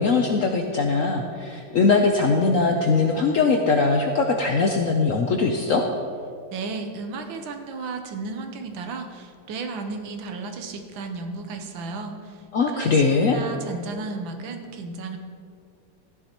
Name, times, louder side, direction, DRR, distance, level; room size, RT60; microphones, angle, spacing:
voice 1, 0.0-5.8 12.5-13.4, left 4 dB, 65° left, 2 dB, 0.8 m, -21 dB
voice 2, 6.5-15.2, right 4 dB, 85° right, 5 dB, 1.6 m, -34 dB
14.5 x 10.0 x 3.0 m, 2.3 s
omnidirectional pair, 2.1 m